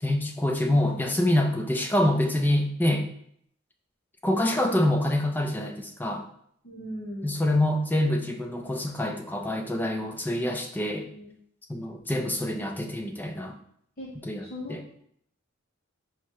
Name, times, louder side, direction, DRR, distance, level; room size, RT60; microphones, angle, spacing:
voice 1, 0.0-3.1 4.2-6.2 7.2-11.1 11.7-13.6 14.2-14.4 14.7-14.8, left 1 dB, 10° left, 3 dB, 0.3 m, -26 dB
voice 2, 6.6-7.4 11.1-11.3 14.0-14.1 14.4-15.0, left 1 dB, 45° left, -4 dB, 0.7 m, -39 dB
4.7 x 2.1 x 4.5 m, 0.68 s
head